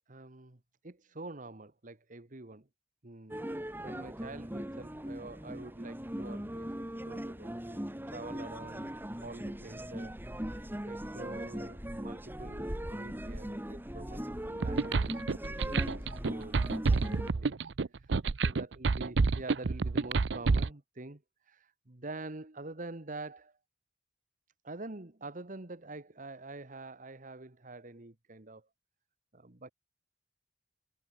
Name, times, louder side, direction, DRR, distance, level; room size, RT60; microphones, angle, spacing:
voice 1, 0.1-2.7 3.0-6.7 7.0-8.9 9.2-15.2 15.5-16.6 16.9-17.6 17.9-18.1 18.4-23.6 24.6-28.7 29.3-29.7, right 2 dB, 45° right, 1.5 m, -46 dB
sound 1, 3.3-17.3, equal, 10° right, 2.4 m, -40 dB
sound 2, 14.6-20.7, right 4 dB, 80° right, 0.6 m, -28 dB
head